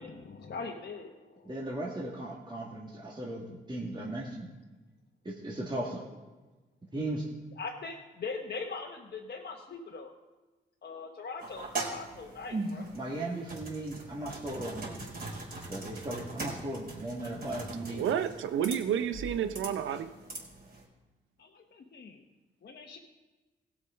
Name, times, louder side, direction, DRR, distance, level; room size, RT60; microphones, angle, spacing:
voice 1, 0.0-1.5 7.6-10.1 10.8-12.8 21.4-22.2 22.6-23.0, left 4 dB, 55° left, 1 dB, 1.1 m, -41 dB
voice 2, 1.4-4.5 5.2-6.0 6.9-7.3 12.9-15.1 15.7-18.0, right 1 dB, 25° right, -4 dB, 2.3 m, -37 dB
sound 1, 11.4-20.8, right 2 dB, 50° right, 4.4 m, -41 dB
voice 3, 17.9-20.1, right 9 dB, 90° right, 10 dB, 0.7 m, -30 dB
17.0 x 6.2 x 5.2 m, 1.2 s
cardioid pair, 55°, 20 cm